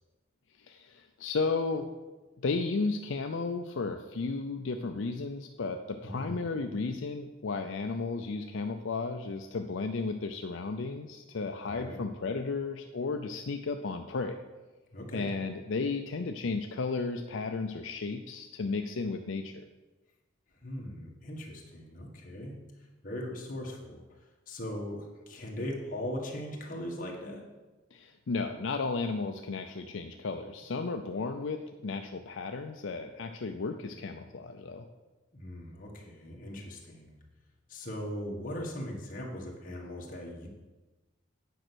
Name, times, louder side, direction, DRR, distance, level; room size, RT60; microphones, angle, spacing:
voice 1, 0.6-1.9 2.4-14.4 15.1-19.6 27.9-34.9, left 4 dB, 75° left, 5 dB, 0.5 m, -34 dB
voice 2, 6.0-6.3 11.6-12.0 14.9-15.3 20.6-22.5 23.0-24.0 24.5-27.4 35.3-37.1 37.7-40.5, left 1 dB, 40° left, -1 dB, 1.7 m, -39 dB
9.2 x 5.4 x 6.2 m, 1.2 s
head